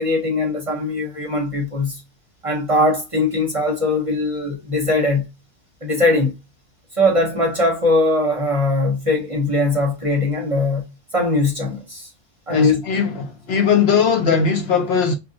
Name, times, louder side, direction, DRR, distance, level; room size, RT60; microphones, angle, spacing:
voice 1, 0.0-2.0 2.4-5.2 5.8-6.3 6.9-10.8 11.1-12.1 12.5-12.8, left 2 dB, 30° right, 0.8 m, -20 dB
voice 2, 12.5-15.1, left 5 dB, 65° left, 0.8 m, -19 dB
2.4 x 2.2 x 3.8 m
omnidirectional pair, 1.2 m